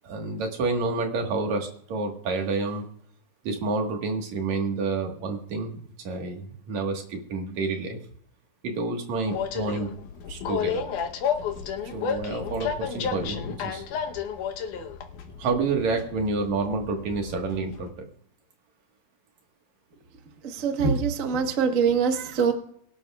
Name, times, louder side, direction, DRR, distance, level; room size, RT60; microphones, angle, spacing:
voice 1, 0.0-2.9 3.4-8.0 8.6-9.9 10.3-10.8 11.8-13.8 15.4-18.1, right 3 dB, 70° right, 3 dB, 2.9 m, -29 dB
Train, 9.3-17.9, left 7 dB, 85° left, 2.5 m, -32 dB
voice 2, 20.4-22.5, right 6 dB, 45° right, 5 dB, 1.0 m, -24 dB
22.5 x 11.5 x 2.4 m, 0.66 s
omnidirectional pair, 3.5 m